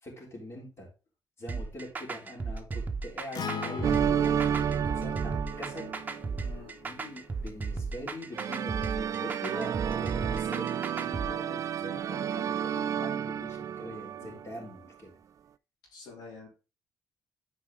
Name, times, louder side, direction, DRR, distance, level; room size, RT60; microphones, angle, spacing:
voice 1, 0.0-0.9 1.4-5.9 6.8-15.1, equal, 35° left, -1 dB, 3.8 m, -43 dB
sound 1, 1.5-11.3, right 4 dB, 25° right, 0.9 m, -35 dB
Acoustic guitar, 3.3-7.6, left 5 dB, 65° left, 1.1 m, -41 dB
sound 2, 3.8-6.5 8.3-14.6, right 8 dB, 50° right, 0.4 m, -31 dB
voice 2, 6.4-6.8 14.2-14.5 15.9-16.5, left 4 dB, 80° left, -1 dB, 3.0 m, -48 dB
8.7 x 4.9 x 3.6 m, 0.30 s
cardioid pair, 110°, 7 cm